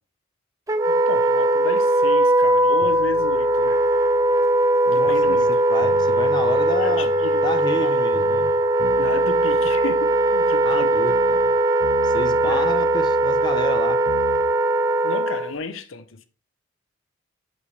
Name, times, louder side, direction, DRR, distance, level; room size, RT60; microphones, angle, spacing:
Wind instrument woodwind instrument, 0.7-15.6, right 1 dB, 15° right, 0.4 m, -19 dB
voice 1, 0.9-3.8 4.9-5.5 6.7-8.0 9.0-10.9 12.4-12.7 15.0-16.3, left 4 dB, 70° left, 0.8 m, -33 dB
sound 1, 2.8-5.5 5.8-11.5 11.8-14.4, equal, 50° right, 1.7 m, -40 dB
voice 2, 4.9-7.1 7.4-8.5 10.6-11.4 12.0-14.1, left 2 dB, 20° left, 0.8 m, -30 dB
7.8 x 6.8 x 3.3 m
head